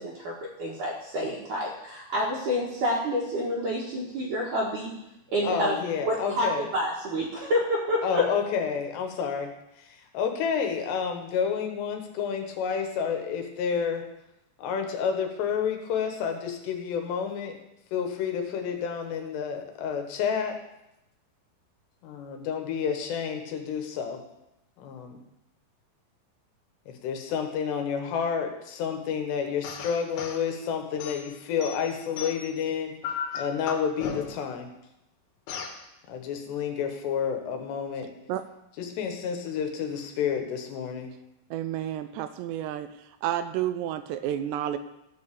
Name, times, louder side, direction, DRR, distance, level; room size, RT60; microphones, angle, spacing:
voice 1, 0.0-4.9 5.3-5.8 6.1-8.2, equal, 60° right, -5 dB, 2.5 m, -28 dB
voice 2, 5.4-6.7 8.0-9.5 9.8-14.0 14.6-17.6 17.9-20.6 22.0-24.2 24.8-25.2 26.9-32.9 33.4-34.7 36.1-38.1 38.8-41.1, left 7 dB, 75° left, 4 dB, 3.3 m, -30 dB
sound 1, 29.6-30.4 31.0-32.6 33.0-34.5 35.5-35.8, left 7 dB, 90° left, 3.6 m, -36 dB
voice 3, 41.5-42.9 43.2-44.8, right 11 dB, 85° right, 11 dB, 2.5 m, -30 dB
14.5 x 5.4 x 6.8 m, 0.86 s
omnidirectional pair, 5.2 m